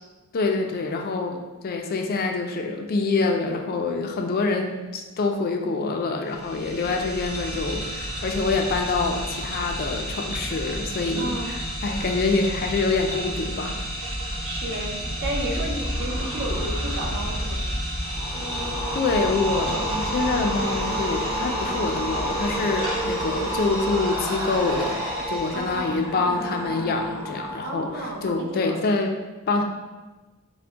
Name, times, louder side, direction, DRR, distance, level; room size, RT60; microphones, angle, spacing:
voice 1, 0.3-13.8 18.9-25.0 25.3-29.1 29.5-29.6, left 3 dB, 45° left, 3 dB, 0.3 m, -26 dB
sound 1, 6.3-26.0, equal, 70° right, 1.0 m, -32 dB
voice 2, 11.2-11.5 14.4-17.6 25.5-26.0 27.6-28.7, right 1 dB, 55° right, 0 dB, 0.5 m, -32 dB
sound 2, 15.0-27.7 28.0-28.4, equal, 15° right, 0.7 m, -30 dB
3.4 x 2.1 x 3.7 m, 1.2 s
head